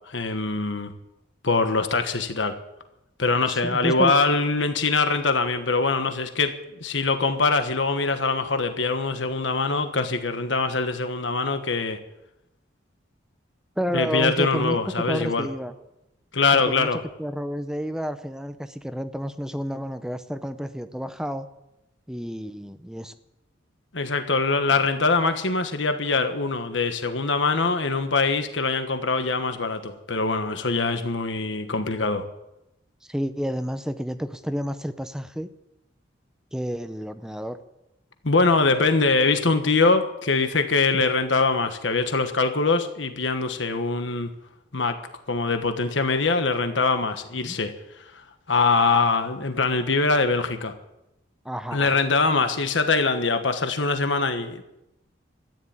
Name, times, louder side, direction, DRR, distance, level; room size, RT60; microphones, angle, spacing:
voice 1, 0.1-0.9 1.4-2.6 3.2-6.5 6.8-12.0 13.9-15.5 16.3-17.0 23.9-32.2 38.2-44.3 44.7-45.0 45.3-47.7 48.5-50.7 51.7-54.6, left 3 dB, 75° left, 7 dB, 1.3 m, -23 dB
voice 2, 3.5-4.1 13.8-14.8 15.1-15.7 16.5-16.9 17.2-21.5 22.1-23.1 30.8-31.0 33.1-35.5 36.5-37.6 40.9-41.0 47.5-47.6 51.4-52.0, equal, 5° right, 10 dB, 0.6 m, -30 dB
13.5 x 10.5 x 8.8 m, 0.90 s
head